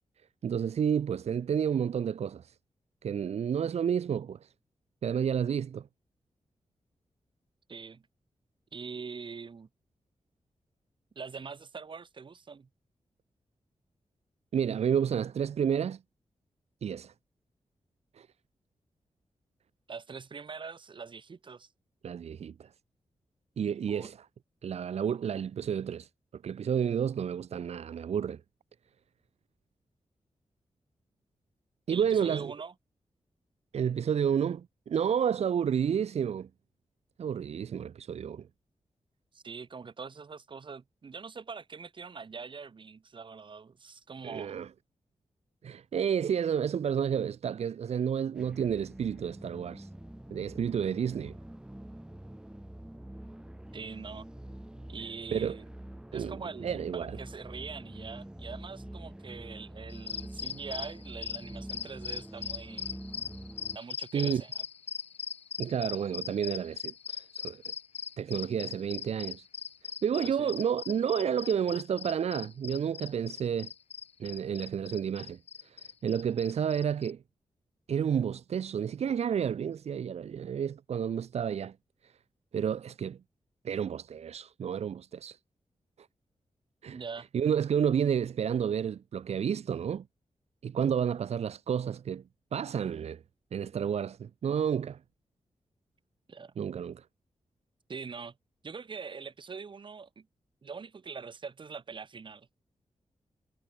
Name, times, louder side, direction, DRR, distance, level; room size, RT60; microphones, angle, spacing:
voice 1, 0.4-2.6 3.0-4.5 5.0-5.9 14.5-16.0 16.8-17.1 18.1-18.3 22.0-22.7 23.6-24.2 24.6-28.4 31.9-32.5 33.7-36.5 37.2-38.5 44.2-44.7 45.6-49.9 50.3-51.4 55.3-55.6 56.1-57.2 64.1-64.4 65.6-67.6 68.2-69.5 70.0-73.7 74.2-77.2 77.9-81.7 82.0-82.1 82.5-83.2 83.6-85.4 86.8-87.0 87.3-90.1 90.6-92.2 92.5-93.2 93.5-95.0 96.6-97.0, right 8 dB, 70° right, 0.8 m, -30 dB
voice 2, 7.7-8.0 8.7-9.7 11.2-12.7 19.9-21.7 23.9-24.1 31.9-32.7 39.3-44.6 53.7-54.3 54.9-55.6 56.1-63.0 63.7-64.6 70.2-70.5 86.9-87.3 96.3-96.5 97.9-98.3 98.6-100.3 100.6-102.6, right 5 dB, 45° right, 4.1 m, -43 dB
sound 1, 48.4-63.8, right 1 dB, 5° right, 6.3 m, -45 dB
sound 2, 59.9-77.1, left 7 dB, 70° left, 1.1 m, -40 dB
wide cardioid pair, 155°, 11 cm